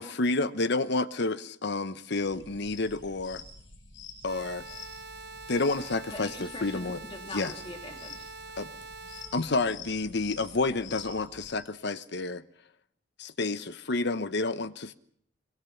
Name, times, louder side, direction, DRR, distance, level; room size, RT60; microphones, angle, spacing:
voice 1, 0.0-3.4 4.2-4.6 5.5-7.0 7.3-7.5 8.6-8.7 9.3-12.4 13.2-14.9, left 3 dB, 65° left, 1.0 m, -30 dB
sound 1, 2.2-11.5, left 5 dB, 85° left, 7.9 m, -48 dB
sound 2, 4.3-9.3, right 3 dB, 70° right, 5.7 m, -44 dB
voice 2, 6.1-8.3, left 2 dB, 30° left, 3.1 m, -43 dB
24.5 x 22.5 x 7.2 m
head